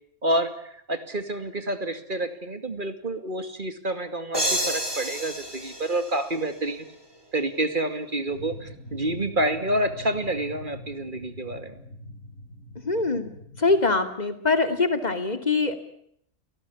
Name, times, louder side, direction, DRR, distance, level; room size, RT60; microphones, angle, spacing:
voice 1, 0.2-6.9 7.3-11.8, right 1 dB, 35° right, 9 dB, 2.5 m, -28 dB
sound 1, 4.3-7.0, equal, 15° right, 4.7 m, -30 dB
sound 2, 8.3-14.0, left 1 dB, 55° left, 2.7 m, -43 dB
voice 2, 12.8-13.3 13.6-15.8, left 3 dB, 30° left, 8 dB, 2.8 m, -23 dB
30.0 x 18.5 x 8.6 m, 0.71 s
omnidirectional pair, 1.5 m